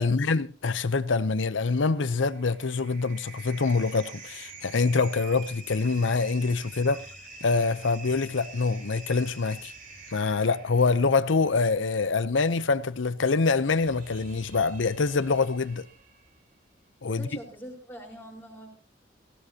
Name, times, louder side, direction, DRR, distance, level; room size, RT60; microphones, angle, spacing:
voice 1, 0.0-7.0 7.4-9.7 10.1-15.9 17.0-17.3, left 4 dB, 80° left, 0.7 m, -25 dB
sound 1, 1.9-16.4, right 3 dB, 45° right, 4.2 m, -47 dB
voice 2, 17.1-18.7, equal, 10° left, 4.6 m, -43 dB
16.5 x 16.5 x 2.9 m
head